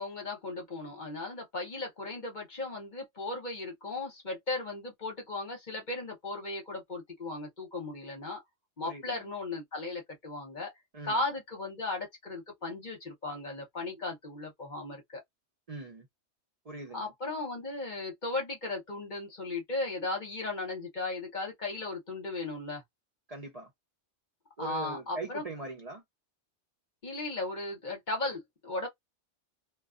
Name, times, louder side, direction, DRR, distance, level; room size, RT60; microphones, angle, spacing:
voice 1, 0.0-8.4 8.8-10.7 11.0-15.2 16.9-22.8 24.6-25.4 27.0-28.9, left 2 dB, 45° left, 1.0 m, -36 dB
voice 2, 8.8-9.2 10.9-11.2 15.7-16.1 16.6-17.1 23.3-23.7 24.6-26.0, right 3 dB, 40° right, 0.7 m, -41 dB
2.3 x 2.3 x 2.4 m
omnidirectional pair, 1.2 m